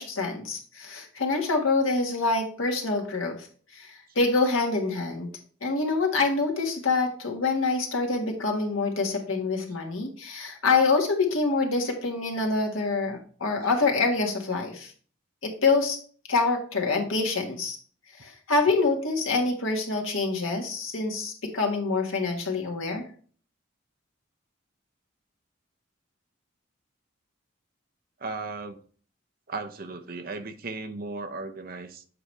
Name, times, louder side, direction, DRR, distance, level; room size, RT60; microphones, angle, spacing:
voice 1, 0.0-3.4 3.7-5.3 5.6-14.9 15.4-16.0 16.3-17.8 18.2-23.0, left 3 dB, 85° left, 1.6 m, -26 dB
voice 2, 28.2-28.8 29.5-32.1, right 3 dB, 45° right, 0.7 m, -36 dB
7.8 x 4.9 x 3.2 m
head